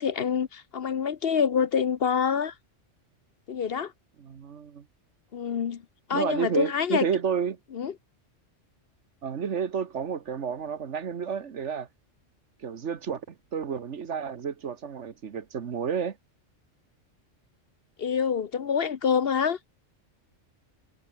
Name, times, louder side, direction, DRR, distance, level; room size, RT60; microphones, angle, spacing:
voice 1, 0.0-2.5 3.5-3.9 5.3-5.8 6.1-7.1 7.7-7.9 18.0-19.6, left 7 dB, 55° left, 0.9 m, -26 dB
voice 2, 4.2-4.8 6.1-7.6 9.2-11.9 12.6-16.2, right 7 dB, 65° right, 1.5 m, -31 dB
omnidirectional pair, 1.3 m